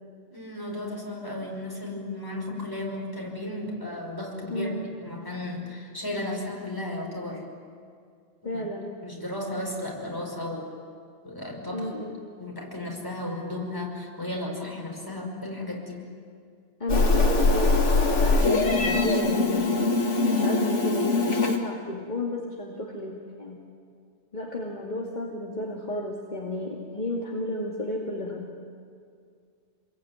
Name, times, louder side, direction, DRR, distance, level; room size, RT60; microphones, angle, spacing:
voice 1, 0.3-4.7 5.1-7.4 8.4-8.6 9.0-10.7 11.2-11.9 12.4-16.0 24.7-24.8, left 1 dB, 15° left, -1 dB, 5.7 m, -34 dB
voice 2, 4.5-4.9 8.4-8.9 11.7-12.3 16.8-19.7 20.2-23.6 24.3-28.4, left 1 dB, 40° left, -2 dB, 2.6 m, -33 dB
Meow, 16.9-21.6, left 3 dB, 75° left, 2.6 m, -22 dB
28.0 x 22.0 x 9.5 m, 2.2 s
omnidirectional pair, 1.2 m